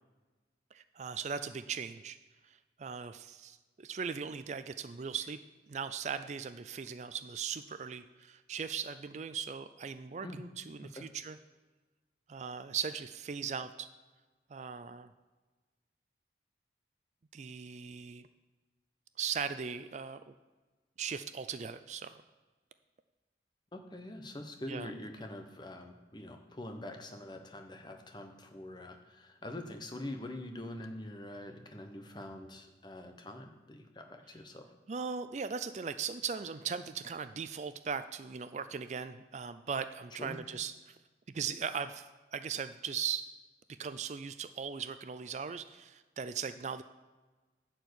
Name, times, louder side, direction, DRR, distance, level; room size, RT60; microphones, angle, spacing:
voice 1, 0.7-2.2 2.4-5.4 5.7-11.4 12.3-13.9 14.5-15.1 17.3-18.3 19.2-20.3 21.0-22.2 24.7-24.9 34.9-40.9 41.3-43.2 43.7-46.8, right 6 dB, 40° right, 11 dB, 0.4 m, -39 dB
voice 2, 23.7-34.7 40.2-40.4, left 1 dB, 25° left, 5 dB, 1.0 m, -44 dB
11.5 x 4.5 x 8.1 m, 1.3 s
head